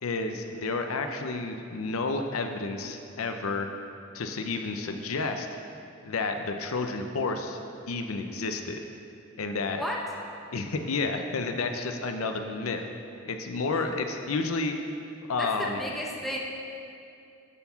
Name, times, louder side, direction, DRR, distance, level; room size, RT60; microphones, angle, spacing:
voice 1, 0.0-3.7 4.1-5.5 6.0-7.6 7.9-8.8 9.4-9.9 10.5-12.8 13.3-14.8 15.3-15.8, left 3 dB, 80° left, 5 dB, 0.6 m, -30 dB
voice 2, 15.4-16.4, equal, ahead, -3 dB, 0.9 m, -33 dB
12.5 x 4.6 x 5.6 m, 2.5 s
head